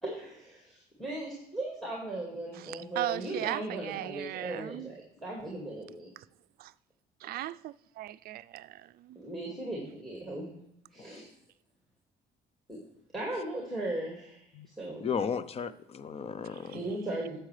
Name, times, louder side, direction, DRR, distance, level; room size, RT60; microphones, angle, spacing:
voice 1, 0.0-6.1 9.2-10.6 10.9-11.3 12.7-12.8 13.1-15.1 16.4-17.4, right 2 dB, ahead, 2.1 m, -38 dB
voice 2, 2.5-4.9 6.6-6.7 7.2-9.2 16.7-16.8, right 14 dB, 65° right, 0.4 m, -38 dB
voice 3, 15.0-16.8, left 6 dB, 35° left, 0.6 m, -34 dB
10.5 x 7.7 x 3.3 m
cardioid pair, 110°, 17 cm